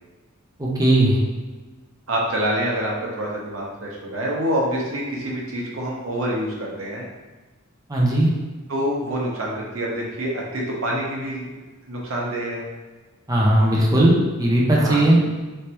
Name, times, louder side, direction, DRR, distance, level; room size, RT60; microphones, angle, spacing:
voice 1, 0.6-1.2 7.9-8.3 13.3-15.2, right 1 dB, 15° right, -4 dB, 0.6 m, -17 dB
voice 2, 2.1-7.0 8.7-11.6 11.9-12.7 14.8-15.2, right 1 dB, 70° right, -3 dB, 0.8 m, -26 dB
3.2 x 3.2 x 2.9 m, 1.2 s
head